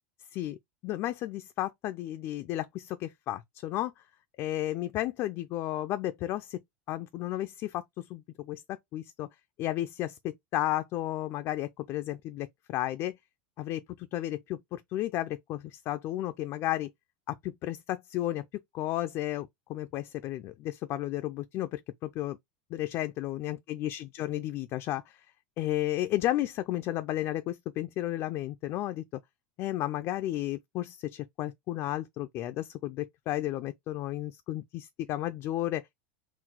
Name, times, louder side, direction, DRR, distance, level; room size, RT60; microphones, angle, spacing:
voice 1, 0.8-3.9 4.4-6.6 6.9-9.3 9.6-13.2 13.6-16.9 17.3-22.4 22.7-25.2 25.6-29.0 29.6-35.8, left 14 dB, 45° left, 0.4 m, -33 dB
3.9 x 2.3 x 4.3 m
supercardioid pair, 130°, 6 cm